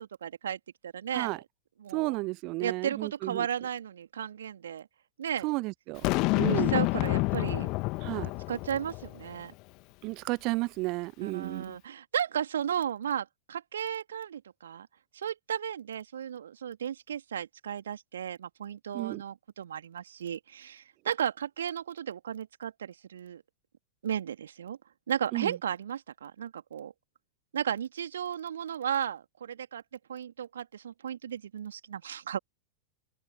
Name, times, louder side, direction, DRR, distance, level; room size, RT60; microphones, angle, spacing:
voice 1, 0.0-1.4 1.8-2.2 2.6-4.9 5.2-5.5 6.5-7.7 8.5-9.5 11.2-14.9 15.1-23.4 24.0-24.8 25.1-26.9 27.5-29.8 30.1-32.4, right 9 dB, 65° right, 2.5 m, -34 dB
voice 2, 1.9-3.5 5.4-6.0 6.4-6.7 8.0-8.3 10.0-11.8 18.9-19.2 25.3-25.5, right 24 dB, 40° right, 0.5 m, -32 dB
Boom, 6.0-9.3, left 25 dB, 40° left, 1.6 m, -28 dB
open air
figure-of-eight pair, 90°, 0 cm